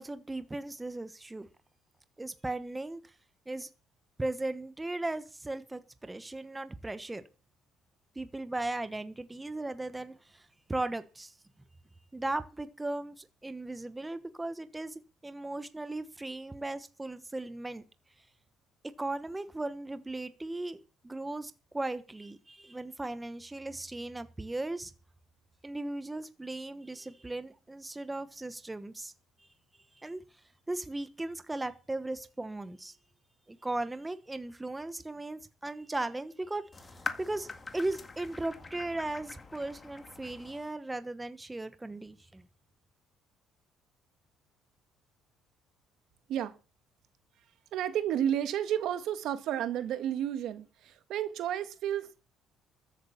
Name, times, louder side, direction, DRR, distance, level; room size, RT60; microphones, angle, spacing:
voice 1, 0.0-1.5 2.2-3.0 3.5-3.7 4.2-7.2 8.1-11.3 12.1-17.8 19.0-24.9 25.6-29.1 30.0-30.2 30.7-32.9 33.5-37.5 37.7-42.4, right 2 dB, 10° right, 1.1 m, -37 dB
sound 1, 36.7-40.7, left 4 dB, 25° left, 1.8 m, -43 dB
voice 2, 47.7-52.2, right 10 dB, 70° right, 1.6 m, -32 dB
14.0 x 8.5 x 7.2 m
cardioid pair, 115°, 0 cm